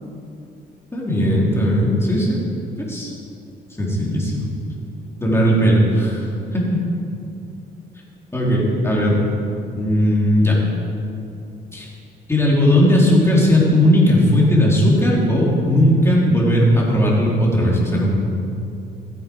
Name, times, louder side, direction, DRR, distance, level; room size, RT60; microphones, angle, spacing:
voice 1, 0.9-2.3 2.9-3.1 3.8-4.5 5.2-6.6 8.3-9.2 9.7-10.6 11.7-11.9 12.3-18.1, equal, 15° left, -4 dB, 3.6 m, -17 dB
15.0 x 9.1 x 4.7 m, 2.6 s
cardioid pair, 90°, 20 cm